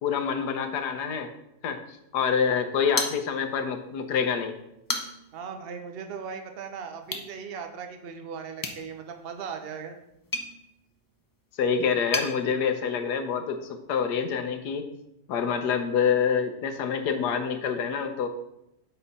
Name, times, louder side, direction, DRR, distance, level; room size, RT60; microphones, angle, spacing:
voice 1, 0.0-1.3 1.6-4.5 11.6-14.9 15.3-18.3, left 6 dB, 85° left, 7 dB, 1.4 m, -27 dB
sound 1, 2.9-3.7 4.1-4.2 4.7-5.4 7.0-7.3 8.6-12.3, left 2 dB, 35° left, 0.3 m, -35 dB
voice 2, 5.3-10.0, right 6 dB, 45° right, 6 dB, 0.9 m, -38 dB
7.7 x 4.1 x 5.4 m, 0.83 s
omnidirectional pair, 1.7 m